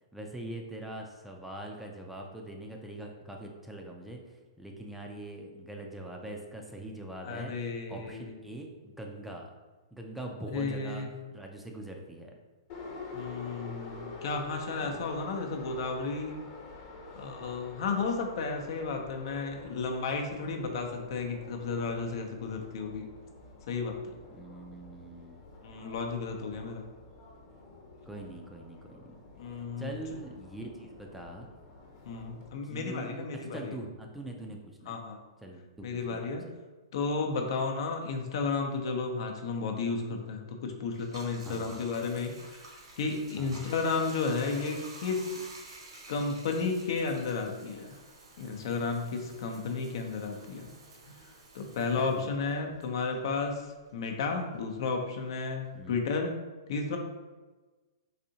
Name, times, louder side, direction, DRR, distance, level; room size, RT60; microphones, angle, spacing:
voice 1, 0.1-7.5 7.9-9.5 9.9-11.0 11.3-12.3 14.8-15.1 24.3-25.4 28.1-29.2 29.5-31.5 32.6-33.3 33.5-35.0 35.4-36.4 41.5-41.8 43.4-43.7 52.0-52.8 55.7-56.0, right 1 dB, 5° right, 1 dB, 0.4 m, -43 dB
voice 2, 7.2-8.3 10.5-11.1 13.1-16.3 17.1-23.0 23.7-24.1 25.6-26.8 29.4-29.9 32.1-33.8 34.9-35.2 35.8-36.4 36.9-45.4 46.1-47.9 48.4-50.7 51.5-56.3 56.7-57.0, left 4 dB, 60° left, 3 dB, 0.6 m, -33 dB
Subway metro underground, 12.7-32.5, left 3 dB, 40° left, 1.0 m, -48 dB
Bathtub (filling or washing), 40.9-53.8 54.1-55.9, right 2 dB, 80° right, 1.2 m, -51 dB
4.1 x 2.6 x 2.7 m, 1.2 s
hypercardioid pair, 135°, 3 cm